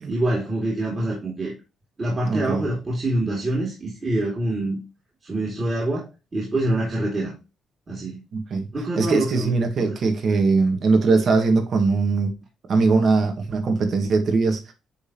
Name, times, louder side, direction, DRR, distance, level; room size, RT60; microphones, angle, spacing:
voice 1, 0.1-1.5 2.0-4.8 5.2-7.4 7.9-8.2 8.7-9.9, right 1 dB, 30° right, 2.5 m, -26 dB
voice 2, 2.3-2.6 8.3-8.7 9.0-12.3 12.7-14.7, right 4 dB, 55° right, 1.6 m, -21 dB
9.2 x 3.5 x 2.9 m
cardioid pair, 90°, 0 cm